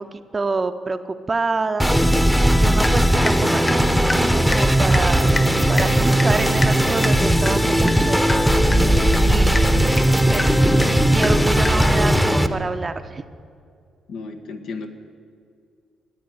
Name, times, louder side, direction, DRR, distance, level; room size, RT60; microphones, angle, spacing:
voice 1, 0.0-2.0 2.5-5.3 5.7-8.2 9.2-9.6 10.3-10.6 11.1-13.2, right 3 dB, 30° right, 8 dB, 0.6 m, -27 dB
sound 1, 1.8-12.5, equal, 5° left, 0.9 m, -17 dB
Water tap faucet / Drip, 2.8-3.4 3.7-12.0, left 2 dB, 30° left, 1.5 m, -30 dB
voice 2, 14.1-14.9, left 4 dB, 80° left, 5 dB, 1.5 m, -33 dB
14.5 x 9.4 x 9.3 m, 2.4 s
cardioid pair, 90°, 0 cm